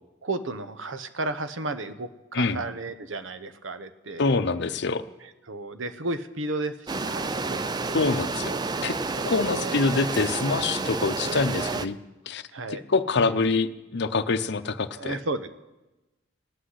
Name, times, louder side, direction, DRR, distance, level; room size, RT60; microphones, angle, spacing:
voice 1, 0.2-4.3 5.2-8.0 9.2-9.6 10.6-10.9 12.5-12.8 13.2-13.4 15.0-15.5, right 2 dB, 75° right, 10 dB, 0.9 m, -34 dB
voice 2, 4.2-5.1 7.9-9.0 9.3-12.0 12.3-12.4 12.9-15.2, left 4 dB, 60° left, 11 dB, 0.7 m, -25 dB
sound 1, 6.9-11.9, right 3 dB, 20° right, 0.4 m, -30 dB
16.5 x 6.3 x 9.5 m, 1.1 s
head